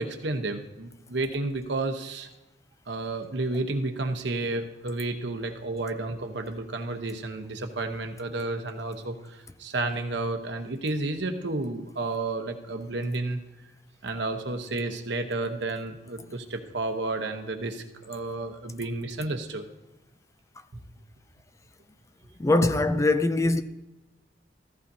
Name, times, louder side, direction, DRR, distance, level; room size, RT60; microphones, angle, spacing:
voice 1, 0.0-2.3 2.9-13.4 14.0-19.7 20.7-20.8, right 2 dB, 70° right, 1.0 m, -31 dB
voice 2, 22.4-23.6, left 2 dB, 15° left, 0.4 m, -22 dB
15.0 x 14.5 x 2.7 m
head